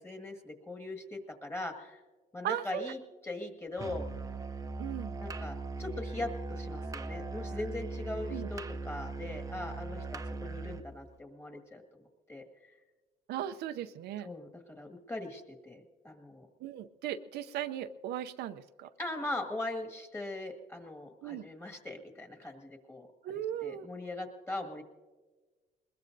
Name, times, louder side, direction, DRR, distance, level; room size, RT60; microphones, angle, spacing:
voice 1, 0.0-2.0 2.3-4.0 5.2-11.8 12.3-12.7 14.2-16.5 19.0-24.8, left 2 dB, 15° left, 4 dB, 1.8 m, -40 dB
voice 2, 2.4-2.9 4.8-5.1 8.3-8.5 13.3-14.3 16.6-18.9 21.2-21.4 23.2-23.9, right 11 dB, 75° right, 10 dB, 0.6 m, -37 dB
Musical instrument, 3.8-10.9, right 3 dB, 20° right, 0.7 m, -39 dB
21.0 x 21.0 x 2.6 m, 1.3 s
cardioid pair, 110°, 17 cm